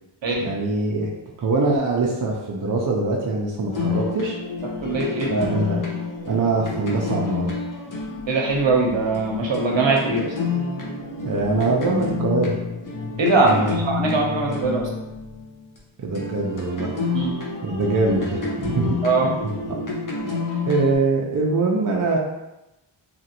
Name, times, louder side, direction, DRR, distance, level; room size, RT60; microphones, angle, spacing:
voice 1, 0.4-1.1 1.4-4.4 5.3-5.8 6.3-7.5 11.2-12.5 13.4-13.8 16.0-17.0 17.6-19.0 19.2-19.3 20.7-22.2, right 3 dB, 45° right, -1 dB, 0.5 m, -23 dB
sound 1, 3.7-15.8 16.1-20.9, left 4 dB, 40° left, 0.6 m, -29 dB
voice 2, 4.8-5.3 8.3-10.3 13.2-14.9 17.1-17.4 19.0-19.3, right 3 dB, 70° right, -1 dB, 0.8 m, -21 dB
2.9 x 2.4 x 2.8 m, 0.95 s
wide cardioid pair, 95°, 48 cm